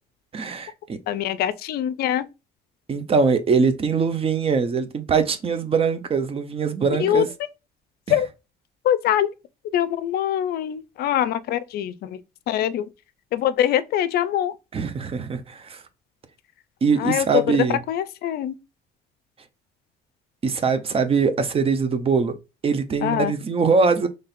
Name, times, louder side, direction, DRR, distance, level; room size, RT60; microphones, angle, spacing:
voice 1, 0.3-1.0 2.9-7.3 8.1-8.2 14.7-15.8 16.8-17.8 20.4-22.3 22.6-24.1, right 5 dB, 35° right, 0.7 m, -22 dB
voice 2, 1.1-2.2 7.0-7.2 8.1-8.3 8.8-9.3 9.7-12.1 12.5-12.9 13.3-14.5 17.0-17.4 17.9-18.5 23.0-23.3, left 11 dB, 70° left, 0.5 m, -23 dB
4.1 x 3.2 x 2.5 m
cardioid pair, 110°, 17 cm